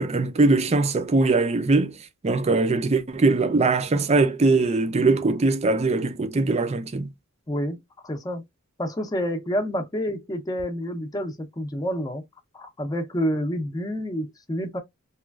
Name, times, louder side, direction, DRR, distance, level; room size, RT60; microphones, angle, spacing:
voice 1, 0.0-2.0 2.2-7.1, right 3 dB, 30° right, 0.4 m, -21 dB
voice 2, 7.5-7.8 8.0-8.4 8.8-12.2 12.5-14.8, equal, 20° left, 0.6 m, -28 dB
3.1 x 2.3 x 2.3 m
head